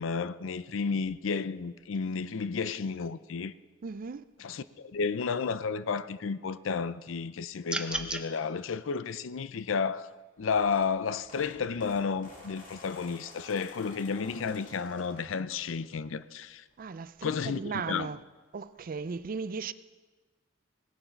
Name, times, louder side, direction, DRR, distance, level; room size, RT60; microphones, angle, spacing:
voice 1, 0.0-3.5 4.4-10.1 10.4-16.6 17.2-18.1, left 5 dB, 75° left, 0.5 m, -32 dB
voice 2, 3.8-4.2 16.8-18.2 18.5-19.7, right 5 dB, 45° right, 0.4 m, -36 dB
sound 1, 7.7-8.2, right 1 dB, 5° right, 0.7 m, -33 dB
sound 2, 10.4-16.0 16.5-16.7 18.0-18.1 18.3-18.4 18.7-18.9, left 1 dB, 45° left, 2.4 m, -51 dB
18.0 x 11.0 x 4.5 m
head